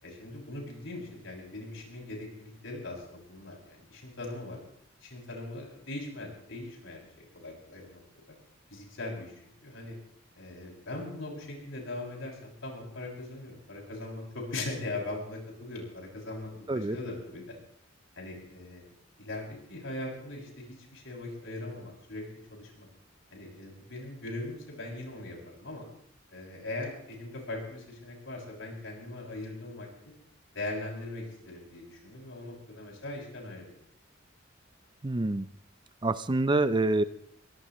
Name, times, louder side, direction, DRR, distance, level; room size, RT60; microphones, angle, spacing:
voice 1, 0.0-4.6 5.0-8.0 8.7-9.9 10.4-17.5 18.2-18.8 19.2-20.7 20.9-22.2 22.5-22.9 23.3-25.9 26.3-29.9 30.5-33.7, left 2 dB, 75° left, -1 dB, 6.7 m, -40 dB
voice 2, 35.0-35.5 36.0-37.0, right 2 dB, 25° right, 13 dB, 0.5 m, -26 dB
23.5 x 17.5 x 3.1 m, 0.68 s
head